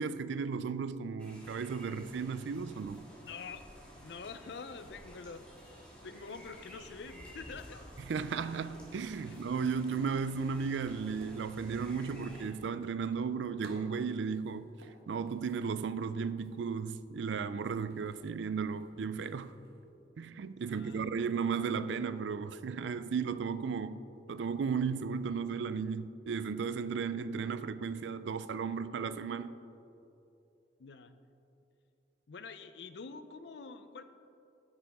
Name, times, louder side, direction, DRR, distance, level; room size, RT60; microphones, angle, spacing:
voice 1, 0.0-3.1 8.1-14.7 15.1-19.5 20.2-24.0 24.3-29.5, right 5 dB, 85° right, 0.4 m, -35 dB
sound 1, 1.2-12.4, equal, 5° left, 1.5 m, -53 dB
voice 2, 3.2-3.6 4.0-5.7 6.0-7.9 9.3-9.4 20.6-21.1 30.8-31.2 32.3-34.0, left 4 dB, 75° left, 0.5 m, -46 dB
sound 2, 7.4-19.9, right 1 dB, 60° right, 1.3 m, -59 dB
10.0 x 8.8 x 3.5 m
head